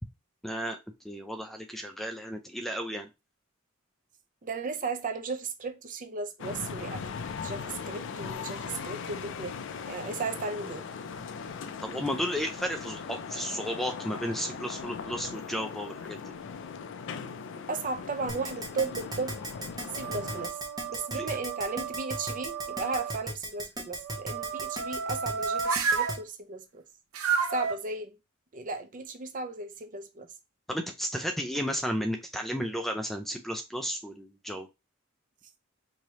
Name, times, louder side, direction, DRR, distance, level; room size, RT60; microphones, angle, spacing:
voice 1, 0.4-0.8 1.0-3.1 11.8-16.2 21.1-21.3 30.7-34.7, equal, ahead, 0.4 m, -33 dB
voice 2, 4.4-7.0 7.4-9.5 9.9-10.8 17.7-19.4 19.9-20.6 20.9-26.8 27.5-28.2 28.5-30.3, right 4 dB, 40° right, 0.6 m, -35 dB
sound 1, 6.4-20.5, left 5 dB, 65° left, 0.4 m, -39 dB
sound 2, 17.8-18.6 19.2-23.1 24.0-26.2 27.1-27.8, right 5 dB, 80° right, 0.7 m, -33 dB
Keyboard (musical), 18.3-26.2, right 2 dB, 20° right, 1.0 m, -36 dB
4.7 x 2.9 x 2.9 m
head